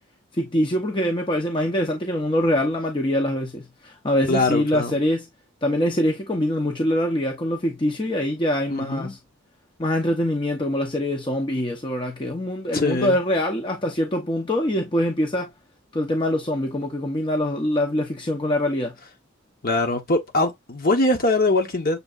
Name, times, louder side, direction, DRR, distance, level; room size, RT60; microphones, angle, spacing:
voice 1, 0.3-5.3 5.6-9.2 9.8-15.5 15.9-18.9, left 1 dB, 25° left, 0.7 m, -24 dB
voice 2, 4.3-4.9 8.7-9.1 12.7-13.2 19.6-22.0, left 2 dB, 45° left, 1.1 m, -22 dB
6.8 x 2.8 x 2.4 m
head